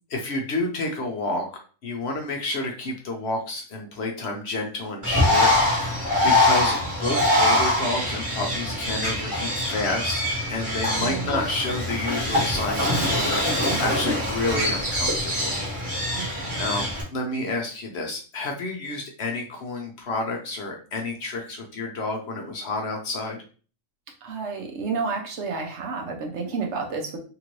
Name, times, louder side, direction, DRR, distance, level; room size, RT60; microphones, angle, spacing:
voice 1, 0.1-1.5 1.8-10.2 10.5-15.6 15.9-16.2 16.6-23.4, left 2 dB, 60° left, 1 dB, 0.8 m, -30 dB
Bird, 5.0-17.0, left 1 dB, 25° right, 1.1 m, -23 dB
voice 2, 11.0-11.5 16.1-16.6 24.2-27.2, right 4 dB, 60° right, 2 dB, 0.9 m, -31 dB
2.9 x 2.5 x 3.0 m, 0.39 s
omnidirectional pair, 1.5 m